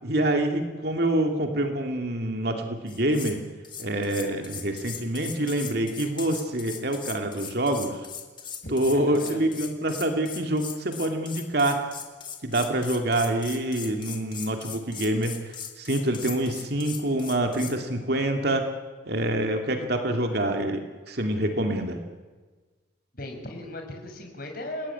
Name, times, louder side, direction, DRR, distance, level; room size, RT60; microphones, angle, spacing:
voice 1, 0.0-3.4 3.8-8.0 8.7-11.8 12.4-18.6 19.1-22.0, right 1 dB, 55° right, 4 dB, 2.5 m, -26 dB
sound 1, 2.9-3.4 3.6-17.8, left 7 dB, 25° left, 2.5 m, -39 dB
voice 2, 8.8-9.4 23.1-24.9, left 1 dB, 50° left, 3 dB, 5.6 m, -37 dB
29.0 x 19.0 x 9.8 m, 1.4 s
head